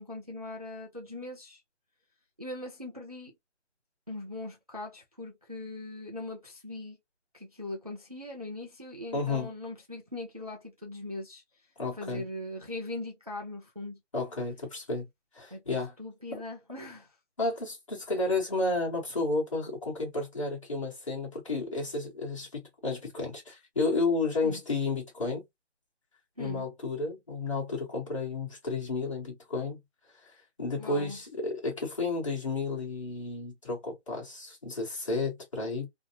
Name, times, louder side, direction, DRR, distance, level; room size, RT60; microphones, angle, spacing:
voice 1, 0.0-1.6 2.4-3.3 4.1-7.0 7.3-11.4 12.0-14.0 15.5-17.1 24.4-24.6 26.4-26.7 30.8-31.2, left 2 dB, 35° right, 0.4 m, -40 dB
voice 2, 9.1-9.5 11.8-12.2 14.1-15.1 15.3-15.9 16.3-16.4 17.4-25.4 26.4-29.8 30.2-35.9, left 3 dB, 25° left, 1.0 m, -32 dB
2.7 x 2.1 x 2.7 m
hypercardioid pair, 175°, 35 cm